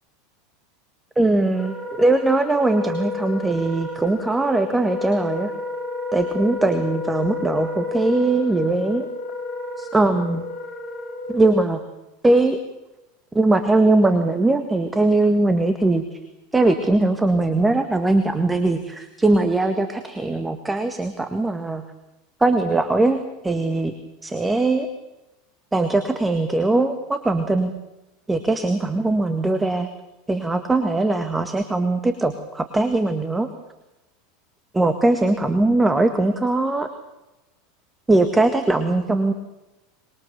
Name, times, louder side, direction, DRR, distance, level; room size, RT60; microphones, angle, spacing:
voice 1, 1.2-5.5 6.1-9.1 9.8-10.4 11.3-11.8 12.2-12.6 13.3-16.2 16.5-21.8 22.4-23.9 24.2-24.9 25.7-27.7 28.3-29.9 30.3-33.5 34.7-36.9 38.1-39.3, right 2 dB, 10° right, 8 dB, 1.8 m, -20 dB
Wind instrument woodwind instrument, 1.5-11.6, left 3 dB, 20° left, 6.2 m, -31 dB
25.0 x 22.0 x 6.8 m, 0.99 s
figure-of-eight pair, 80°, 0 cm